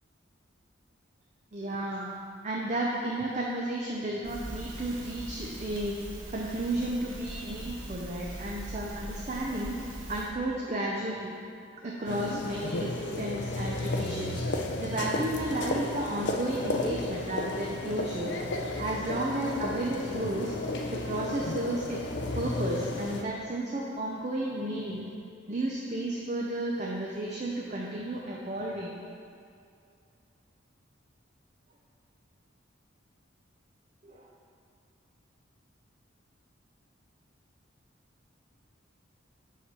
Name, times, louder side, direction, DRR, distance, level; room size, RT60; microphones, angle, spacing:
voice 1, 1.5-2.1 2.4-6.0 6.3-9.8 10.1-11.4 11.8-14.4 14.8-18.4 18.8-20.5 20.9-22.0 22.4-25.1 25.5-29.0 34.0-34.3, right 1 dB, 35° right, -3 dB, 0.5 m, -33 dB
Crackle, 4.2-10.3, right 1 dB, 85° right, 1.2 m, -41 dB
sound 1, 12.1-23.2, left 2 dB, 55° left, 0.5 m, -33 dB
5.9 x 5.5 x 4.8 m, 2.4 s
head